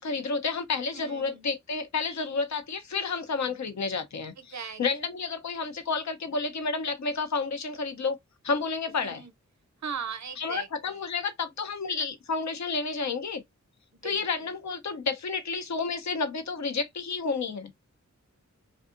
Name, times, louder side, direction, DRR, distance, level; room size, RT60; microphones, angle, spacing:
voice 1, 0.0-8.2 8.4-9.2 10.4-13.4 14.0-17.7, left 4 dB, 70° left, 0.6 m, -30 dB
voice 2, 0.9-1.5 4.4-4.8 9.0-9.3 9.8-11.0 13.9-14.3, right 6 dB, 65° right, 0.6 m, -39 dB
2.6 x 2.3 x 2.4 m
wide cardioid pair, 60°, 30 cm